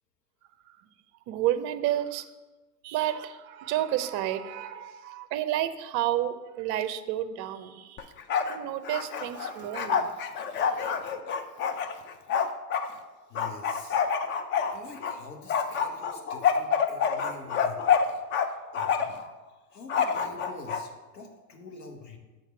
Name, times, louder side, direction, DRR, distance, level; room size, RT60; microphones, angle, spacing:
voice 1, 1.3-2.3 2.8-8.1 8.5-10.2, right 12 dB, 40° right, 11 dB, 0.6 m, -30 dB
Bark, 8.0-8.6 8.8-12.9 13.4-15.2 15.5-18.5 18.7-19.2 19.9-20.8, left 7 dB, 25° left, 0.4 m, -27 dB
voice 2, 13.3-14.0 14.7-18.0 18.7-19.1 19.7-22.2, left 4 dB, 90° left, 3 dB, 1.4 m, -46 dB
7.2 x 4.1 x 6.7 m, 1.2 s
hypercardioid pair, 90°, 48 cm